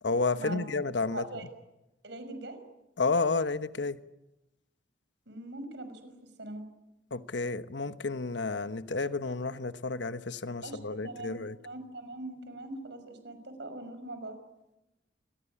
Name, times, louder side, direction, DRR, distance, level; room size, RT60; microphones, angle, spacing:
voice 1, 0.0-1.3 3.0-4.0 7.1-11.6, left 3 dB, 70° left, 1.1 m, -31 dB
voice 2, 1.1-1.5 2.0-2.6 5.3-6.1 6.4-6.6 10.6-14.4, right 2 dB, 70° right, 5.9 m, -42 dB
27.5 x 21.5 x 8.6 m
head